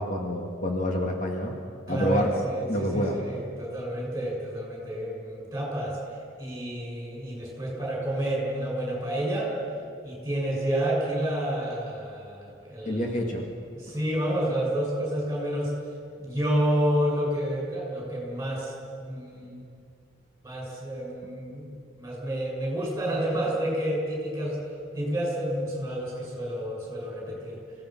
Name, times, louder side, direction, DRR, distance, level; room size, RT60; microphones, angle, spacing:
voice 1, 0.0-1.5 1.9-2.3 2.7-3.2 12.9-13.4, equal, 40° left, 1 dB, 1.9 m, -27 dB
voice 2, 1.9-6.0 6.4-9.5 10.0-13.3 13.7-15.7 16.2-19.7 20.4-24.6 24.9-27.6, right 1 dB, 15° right, -2 dB, 6.5 m, -29 dB
26.0 x 16.5 x 6.0 m, 2.3 s
head